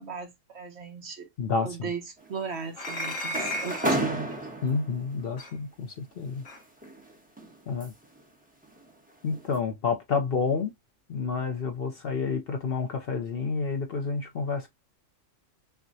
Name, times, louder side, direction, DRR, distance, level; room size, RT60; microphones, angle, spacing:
voice 1, 0.0-1.3 1.6-4.4, right 5 dB, 55° right, 1.3 m, -37 dB
voice 2, 1.4-1.9 4.6-6.4 7.7-7.9 9.2-10.7 11.1-14.7, left 5 dB, 55° left, 0.8 m, -29 dB
sound 1, 2.2-5.1 6.3-8.2 8.6-8.9 9.3-9.6, right 1 dB, 5° right, 0.9 m, -33 dB
sound 2, 2.7-4.1 5.4-5.5 6.4-6.6, left 1 dB, 80° left, 1.7 m, -34 dB
5.9 x 2.2 x 2.6 m
omnidirectional pair, 1.4 m